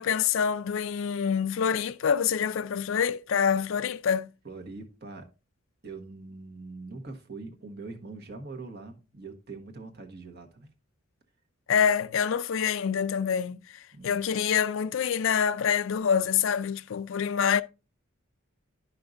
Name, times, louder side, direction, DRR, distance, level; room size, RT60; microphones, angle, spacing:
voice 1, 0.0-4.3 11.7-17.6, left 7 dB, 70° left, 0.4 m, -26 dB
voice 2, 4.4-5.3 5.8-10.7 13.9-14.2, right 3 dB, 50° right, 1.3 m, -42 dB
10.5 x 5.7 x 2.6 m
head